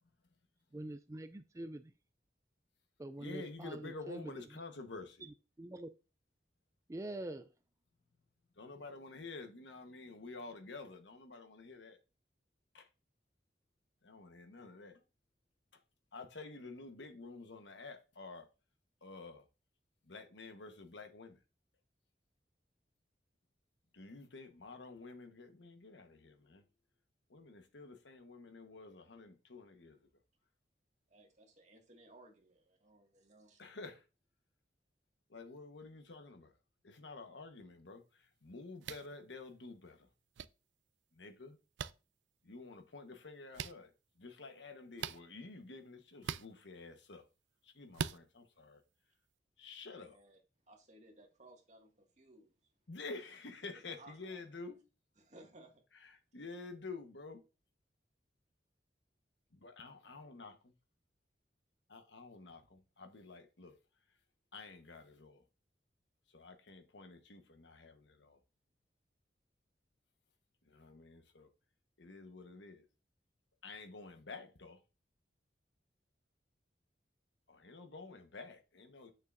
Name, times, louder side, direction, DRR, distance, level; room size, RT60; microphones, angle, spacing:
voice 1, 0.7-1.9 3.0-4.4 5.6-5.9 6.9-7.5, right 1 dB, 15° right, 0.3 m, -44 dB
voice 2, 3.2-5.3 8.5-12.0 12.7-12.9 14.0-15.0 15.7-15.8 16.1-18.5 19.0-19.5 20.0-21.4 23.9-26.6 27.3-30.1 33.6-34.1 35.3-36.5 36.8-40.1 41.1-41.6 42.4-47.3 47.6-48.8 49.6-50.2 52.9-54.8 56.0-57.4 59.5-60.7 61.9-63.8 64.5-65.4 66.3-68.4 70.6-71.5 72.0-72.8 73.6-74.8 77.5-79.1, left 3 dB, 90° left, 1.2 m, -50 dB
voice 3, 31.1-33.6 49.9-50.4 50.7-52.7 53.9-54.4 55.2-55.8, right 1 dB, 40° right, 2.0 m, -60 dB
sound 1, 38.8-39.1 40.4-40.5 41.8-41.9 43.5-43.7 45.0-45.2 46.2-46.5 47.9-48.2, right 7 dB, 85° right, 0.4 m, -39 dB
8.5 x 6.6 x 2.6 m
head